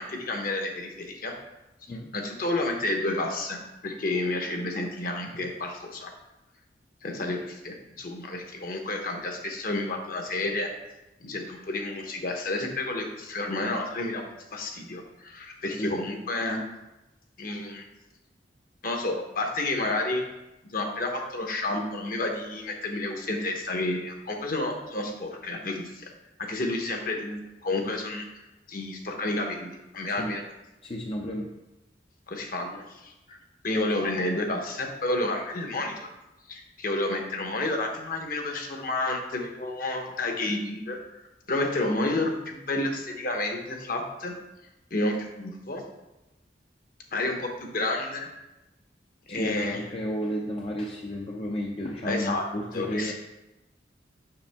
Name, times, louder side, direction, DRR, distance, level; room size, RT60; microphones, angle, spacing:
voice 1, 0.0-1.3 2.1-6.1 7.0-10.7 11.2-14.2 14.5-16.6 17.4-17.8 18.8-20.2 20.6-26.1 26.4-28.3 28.7-30.4 32.3-33.4 33.6-36.1 36.5-41.0 41.5-44.3 44.9-45.8 47.1-48.3 49.3-49.8 52.0-52.4 52.7-53.1, left 2 dB, 55° left, 3 dB, 1.0 m, -30 dB
voice 2, 30.8-31.5 49.3-53.1, equal, 30° left, 0 dB, 0.5 m, -32 dB
6.9 x 5.9 x 3.5 m, 0.98 s
head